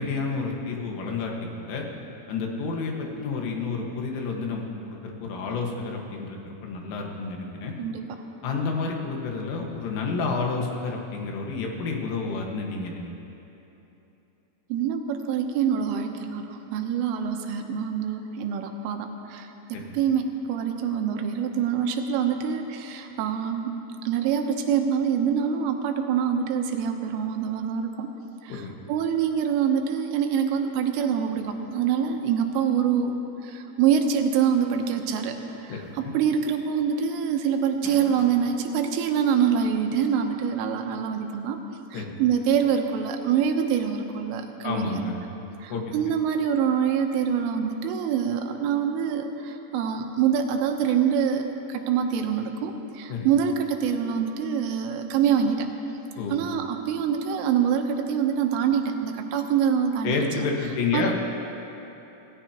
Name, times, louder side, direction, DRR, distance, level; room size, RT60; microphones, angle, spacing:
voice 1, 0.0-1.9 2.3-7.7 8.4-13.1 19.7-19.9 28.5-28.8 35.7-36.1 41.9-42.1 44.6-45.2 45.7-45.9 53.1-53.3 56.2-56.4 60.0-61.2, left 4 dB, 80° left, 0 dB, 4.1 m, -30 dB
voice 2, 14.7-23.7 24.1-28.1 28.4-35.4 35.6-41.6 41.9-45.1 45.6-55.7 56.3-60.4 60.9-61.1, right 7 dB, 80° right, 4 dB, 3.4 m, -25 dB
sound 1, 35.9-36.1 36.5-36.6 37.6-38.5 39.3-39.4 40.9-41.0, left 2 dB, 60° left, 4.4 m, -40 dB
26.0 x 18.0 x 3.0 m, 3.0 s
omnidirectional pair, 5.7 m